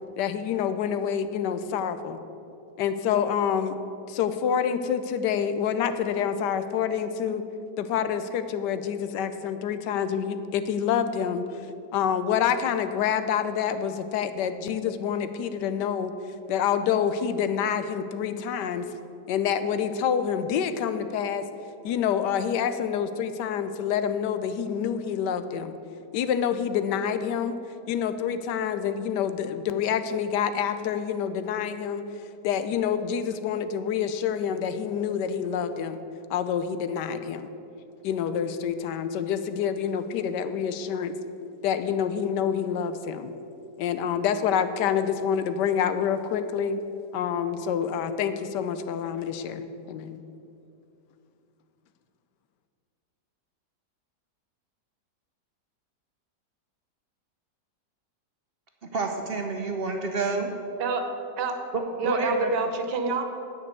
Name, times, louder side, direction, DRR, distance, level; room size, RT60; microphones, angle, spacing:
voice 1, 0.2-2.2 2.8-3.8 4.1-7.4 7.8-11.5 11.9-16.1 16.5-18.9 19.3-21.4 21.8-25.8 26.1-27.6 27.9-32.0 32.4-36.0 36.3-37.5 38.0-41.1 41.6-43.3 43.8-46.8 47.1-49.6 49.9-50.2, left 8 dB, 80° left, 11 dB, 1.2 m, -27 dB
voice 2, 58.8-60.5 61.7-62.5, right 3 dB, 50° right, 3 dB, 0.7 m, -28 dB
voice 3, 62.0-63.2, right 5 dB, 85° right, 6 dB, 1.5 m, -27 dB
9.5 x 5.3 x 8.2 m, 2.7 s
omnidirectional pair, 1.8 m